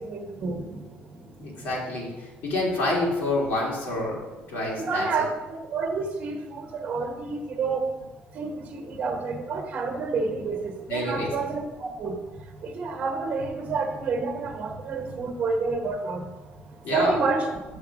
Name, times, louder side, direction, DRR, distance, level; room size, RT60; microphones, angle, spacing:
voice 1, 0.1-0.6 4.9-5.3 5.7-7.8 8.4-8.5 9.0-12.1 12.7-16.2 16.9-17.4, right 4 dB, 35° right, 3 dB, 1.2 m, -28 dB
voice 2, 1.4-5.3 10.9-11.3 15.1-15.2 16.8-17.2, left 2 dB, 60° left, -4 dB, 2.8 m, -28 dB
7.1 x 6.8 x 5.0 m, 1.1 s
cardioid pair, 175°, 4 cm